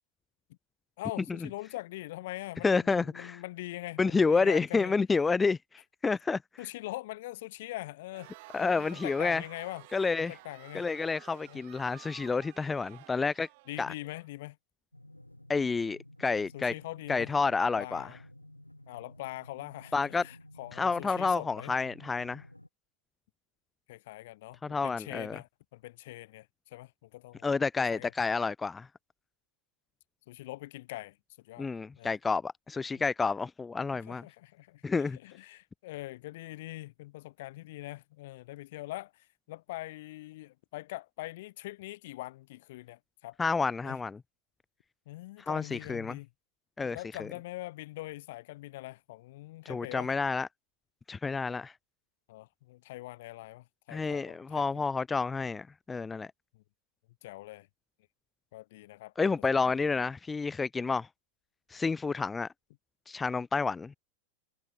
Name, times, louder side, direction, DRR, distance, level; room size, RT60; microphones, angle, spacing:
voice 1, 1.0-4.9 6.6-8.3 8.6-9.9 10.3-10.9 11.5-11.6 13.7-14.6 16.5-17.3 17.8-18.2 18.9-21.8 23.9-27.5 27.9-28.1 30.3-31.7 32.0-32.2 34.1-43.4 43.8-44.0 45.1-46.3 46.8-50.1 52.3-54.8 56.5-56.6 57.2-57.7 58.5-59.1 59.6-60.0, left 18 dB, 50° left, 1.0 m, -43 dB
voice 2, 2.6-3.4 4.0-6.4 8.5-9.4 9.9-10.3 10.7-13.5 13.8-13.9 15.5-16.7 17.1-18.1 19.9-20.2 20.8-22.4 24.6-25.4 27.4-28.9 31.6-34.2 34.8-35.2 43.4-44.2 45.5-46.2 46.8-47.3 49.7-50.5 51.1-51.7 53.9-56.3 59.2-61.1 61.7-62.5 63.1-64.0, left 4 dB, 15° left, 0.4 m, -29 dB
Crowd, 8.1-14.3, right 25 dB, 50° right, 2.8 m, -53 dB
sound 1, 14.9-22.7, left 1 dB, 85° left, 6.2 m, -53 dB
figure-of-eight pair, 90°, 0 cm